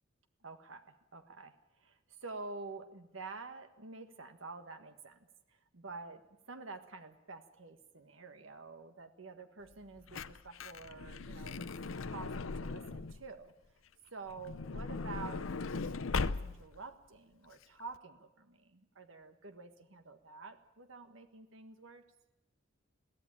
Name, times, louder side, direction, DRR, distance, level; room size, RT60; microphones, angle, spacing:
voice 1, 0.4-11.7 12.1-13.5 14.1-22.0, right 3 dB, 75° right, 8 dB, 1.5 m, -49 dB
Truck / Door, 9.7-13.3 14.3-16.8 17.5-17.6 17.8-18.0, left 4 dB, 85° left, 0.7 m, -39 dB
22.0 x 15.0 x 8.9 m, 1.0 s
head